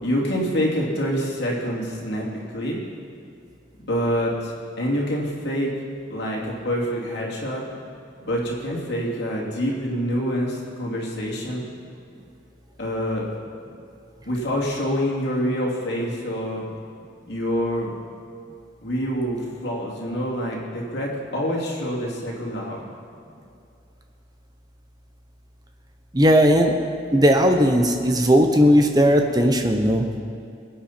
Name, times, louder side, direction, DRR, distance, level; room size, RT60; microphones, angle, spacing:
voice 1, 0.0-2.3 2.5-2.8 3.8-5.7 6.1-7.6 8.2-11.6 12.8-13.2 14.3-16.6 17.3-17.9 18.8-22.8, equal, 65° left, -3 dB, 2.8 m, -26 dB
voice 2, 26.1-26.7 27.1-30.0, equal, 20° right, 4 dB, 0.9 m, -17 dB
21.5 x 9.1 x 4.4 m, 2.5 s
head